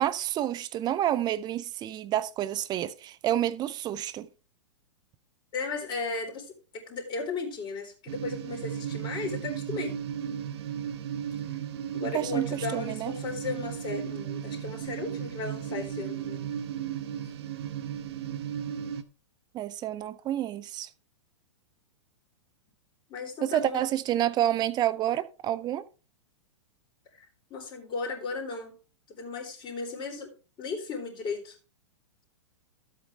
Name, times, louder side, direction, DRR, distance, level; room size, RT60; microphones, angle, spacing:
voice 1, 0.0-4.3 12.1-13.1 19.5-20.9 23.4-25.8, right 12 dB, 25° right, 0.8 m, -29 dB
voice 2, 5.5-10.0 11.9-16.4 23.1-23.8 27.2-28.7 29.1-30.3 30.6-31.5, left 4 dB, 30° left, 3.9 m, -35 dB
sound 1, 8.1-19.0, right 9 dB, 60° right, 1.1 m, -35 dB
12.5 x 8.3 x 3.4 m
hypercardioid pair, 110°, 16 cm